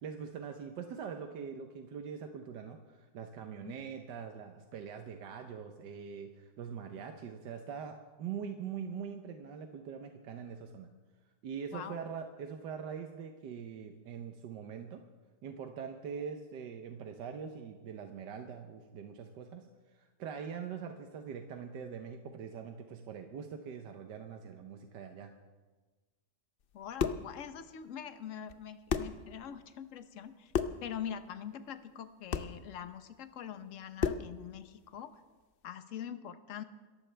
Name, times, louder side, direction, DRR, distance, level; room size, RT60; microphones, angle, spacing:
voice 1, 0.0-10.9 11.4-15.0 15.4-19.7 19.9-25.3, right 7 dB, 80° right, 5 dB, 1.6 m, -43 dB
sound 1, 26.7-27.3 28.5-28.6 28.9-29.2 30.5-30.9 32.3-32.6 34.0-34.3, left 7 dB, 80° left, 0.5 m, -32 dB
voice 2, 26.7-30.5 30.8-35.2 35.6-36.6, left 9 dB, 55° left, 10 dB, 1.1 m, -44 dB
27.0 x 14.5 x 3.4 m, 1.3 s
omnidirectional pair, 1.9 m